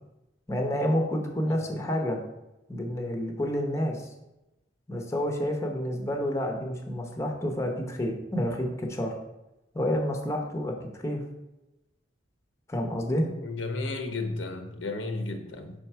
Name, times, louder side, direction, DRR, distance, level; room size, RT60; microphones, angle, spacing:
voice 1, 0.5-2.2 2.7-4.1 4.9-9.1 9.7-11.2 12.7-13.3, equal, 15° left, 2 dB, 0.8 m, -29 dB
voice 2, 13.2-15.7, left 3 dB, 90° left, 5 dB, 1.0 m, -33 dB
5.3 x 4.5 x 5.6 m, 0.95 s
head